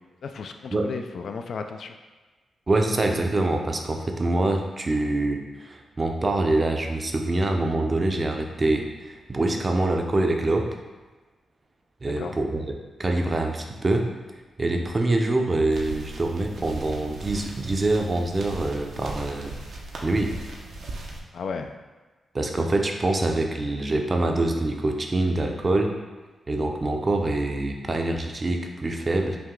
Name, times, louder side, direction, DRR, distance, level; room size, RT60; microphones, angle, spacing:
voice 1, 0.2-1.9 12.2-12.4 21.3-21.7, left 5 dB, 70° left, 6 dB, 0.3 m, -34 dB
voice 2, 2.7-10.7 12.0-14.1 14.6-19.5 20.0-20.3 22.3-25.9 26.5-29.4, right 2 dB, 30° right, 3 dB, 0.5 m, -25 dB
sound 1, 15.7-21.2, right 2 dB, 75° right, 0.7 m, -38 dB
5.8 x 2.2 x 3.7 m, 1.3 s
cardioid pair, 100°, 0 cm